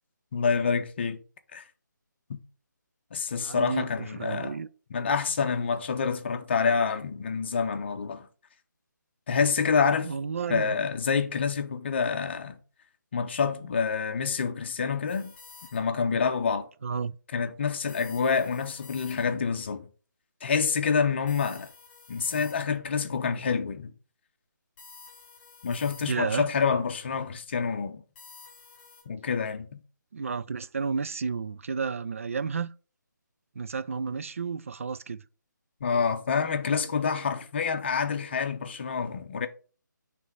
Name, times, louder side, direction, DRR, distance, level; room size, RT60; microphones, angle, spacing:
voice 1, 0.3-1.2 1.5-1.6 2.3-2.4 3.1-4.6 4.9-8.3 9.3-10.1 10.5-12.6 13.1-15.3 15.7-16.7 17.3-19.9 20.4-21.7 22.1-23.9 25.6-28.0 29.1-29.8 35.8-39.5, left 5 dB, 35° left, 0.7 m, -27 dB
voice 2, 3.3-4.7 10.0-10.8 16.8-17.2 26.0-26.5 30.1-32.7 33.6-35.2, right 5 dB, 45° right, 0.3 m, -32 dB
sound 1, 15.1-16.1 17.9-19.5 21.3-22.9 24.8-26.4 28.2-29.0, left 5 dB, 15° left, 3.0 m, -51 dB
9.0 x 3.4 x 5.1 m
figure-of-eight pair, 150°, 11 cm